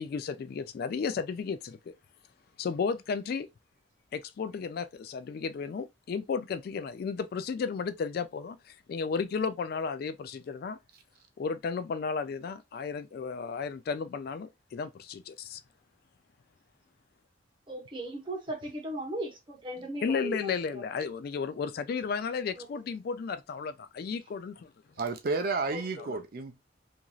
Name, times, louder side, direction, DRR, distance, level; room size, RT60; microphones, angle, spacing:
voice 1, 0.0-1.9 2.6-3.5 4.1-10.8 11.4-15.6 20.0-24.7 26.0-26.2, left 5 dB, 55° left, 0.3 m, -34 dB
voice 2, 17.7-21.1 22.6-22.7 25.7-26.0, right 1 dB, 25° right, 1.0 m, -38 dB
voice 3, 25.0-26.6, right 3 dB, 50° right, 0.4 m, -31 dB
2.9 x 2.6 x 2.2 m
head